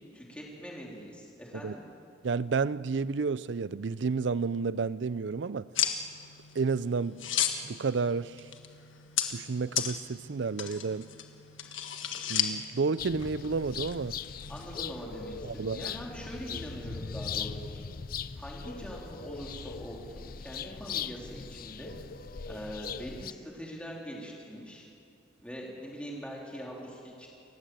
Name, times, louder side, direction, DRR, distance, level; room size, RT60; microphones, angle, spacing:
voice 1, 0.1-1.8 14.5-17.8 18.4-21.9 22.4-24.9 25.4-27.3, equal, 5° left, 3.6 m, -42 dB
voice 2, 2.2-5.7 6.6-7.2 7.6-8.4 9.3-11.1 12.3-14.2 15.4-15.8, right 4 dB, 65° right, 0.5 m, -31 dB
sound 1, 5.8-14.7, left 9 dB, 80° left, 1.5 m, -35 dB
sound 2, 13.0-23.3, left 6 dB, 45° left, 0.5 m, -40 dB
29.0 x 15.5 x 7.8 m
head